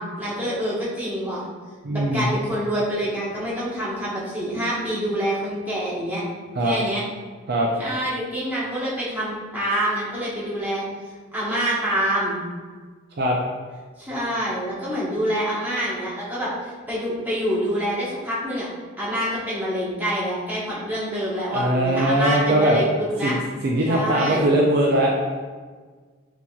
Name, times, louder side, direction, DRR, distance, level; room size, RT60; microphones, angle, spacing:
voice 1, 0.0-1.5 1.9-6.2 6.6-7.0 7.8-10.8 11.3-12.4 14.0-18.7 19.0-23.4 23.9-24.5, equal, 10° right, -9 dB, 1.2 m, -26 dB
voice 2, 1.8-2.3 6.5-6.8 7.5-7.7 13.2-13.4 21.5-22.8 23.2-25.1, right 1 dB, 50° right, -2 dB, 0.5 m, -20 dB
6.9 x 2.9 x 2.3 m, 1.5 s
head